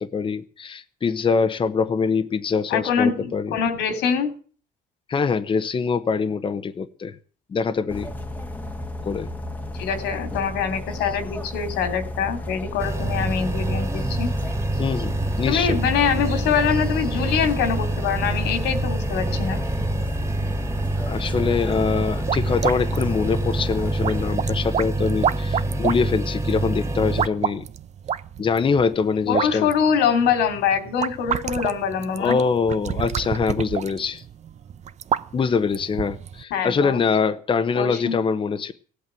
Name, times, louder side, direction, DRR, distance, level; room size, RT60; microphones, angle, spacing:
voice 1, 0.0-3.5 5.1-7.2 7.5-8.1 9.0-9.3 14.0-14.1 14.7-15.8 21.1-27.7 28.4-29.7 32.2-34.2 35.3-38.7, left 5 dB, 30° left, 0.9 m, -24 dB
voice 2, 2.7-4.3 9.7-14.3 15.5-19.6 29.3-32.4 36.5-37.0 37.7-38.2, left 7 dB, 85° left, 3.0 m, -24 dB
sound 1, 7.9-24.4, left 1 dB, 10° left, 1.2 m, -33 dB
sound 2, 12.8-27.3, right 2 dB, 15° right, 1.3 m, -26 dB
sound 3, 21.9-36.4, right 9 dB, 45° right, 0.6 m, -30 dB
16.5 x 8.4 x 9.1 m
cardioid pair, 110°, 17 cm